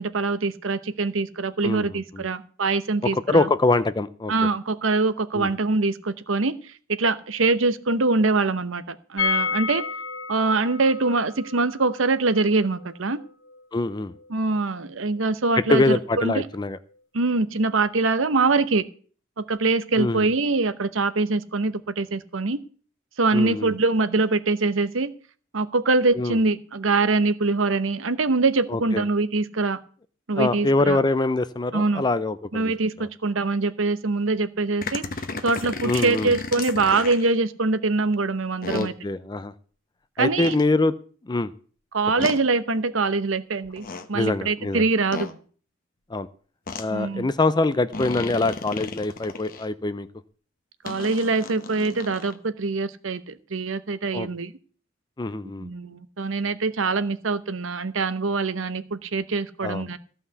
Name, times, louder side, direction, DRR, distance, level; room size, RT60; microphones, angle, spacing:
voice 1, 0.0-3.5 4.3-6.5 6.9-9.8 10.3-13.2 14.3-16.4 17.1-18.8 19.4-22.6 23.2-25.1 25.5-29.8 30.3-31.0 31.7-32.0 32.5-35.0 35.4-38.9 40.2-40.6 41.9-45.3 46.9-47.3 50.8-54.5 55.6-60.0, right 3 dB, 75° right, 12 dB, 0.9 m, -23 dB
voice 2, 3.0-4.3 5.3-5.5 13.7-14.1 15.6-16.8 19.9-20.3 23.3-23.7 26.1-26.4 28.7-29.0 30.4-32.7 33.0-33.1 35.8-36.3 38.7-39.5 40.2-40.9 41.3-41.5 44.1-44.8 46.1-46.3 46.8-50.1 54.1-54.3 55.2-55.7 59.6-59.9, left 2 dB, 20° left, 13 dB, 0.5 m, -24 dB
sound 1, 9.2-14.9 15.2-15.3 15.6-15.7, left 5 dB, 70° left, 0.9 m, -32 dB
sound 2, 34.8-37.3 38.6-38.9 40.4-40.6 42.2-42.4 43.6-44.1 45.1-45.3 46.7-46.8 47.9-49.6 50.8-52.4, left 3 dB, 45° left, 1.1 m, -34 dB
14.5 x 5.7 x 8.2 m, 0.43 s
head